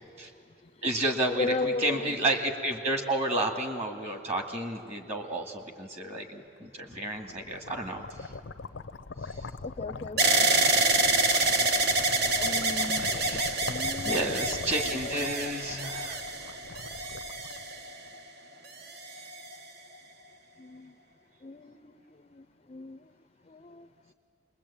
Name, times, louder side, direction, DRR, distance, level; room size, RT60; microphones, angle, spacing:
voice 1, 0.1-0.8 1.4-2.3 6.9-7.0 8.9-9.0 9.5-10.5 12.3-14.6 14.8-15.6 20.5-21.0 21.4-24.1, left 3 dB, 30° left, 10 dB, 0.5 m, -38 dB
voice 2, 0.8-8.3 9.2-9.4 13.0-13.5 14.0-16.2, right 1 dB, 35° right, 4 dB, 2.2 m, -31 dB
sound 1, 6.9-18.1, left 3 dB, 75° left, 0.6 m, -41 dB
sound 2, 10.2-18.2 18.9-19.5, right 2 dB, 55° right, 1.2 m, -27 dB
27.5 x 21.5 x 8.7 m, 2.5 s
head